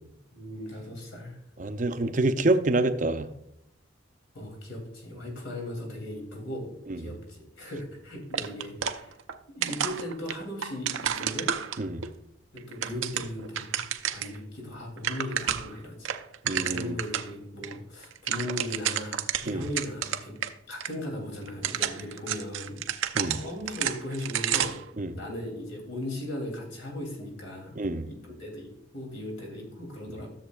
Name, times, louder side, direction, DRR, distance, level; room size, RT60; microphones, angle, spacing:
voice 1, 0.3-1.4 4.3-9.2 9.5-11.6 12.5-13.8 14.1-16.1 16.5-20.4 20.7-22.8 23.3-24.8 25.1-27.8 28.1-30.3, left 1 dB, 90° left, 3.0 m, -38 dB
voice 2, 1.6-3.3 6.9-7.1 11.8-12.0 16.4-17.0 19.5-19.7 23.1-23.4 25.0-25.2 27.8-28.1, right 2 dB, 40° right, 0.5 m, -27 dB
sound 1, 8.3-9.4 9.6-12.1 12.6-14.4 14.7-14.8 15.0-15.8 16.0-17.3 17.6-17.7 18.0-20.5 20.8-20.9 21.5-24.9, right 9 dB, 90° right, 0.5 m, -31 dB
13.0 x 7.3 x 2.4 m
head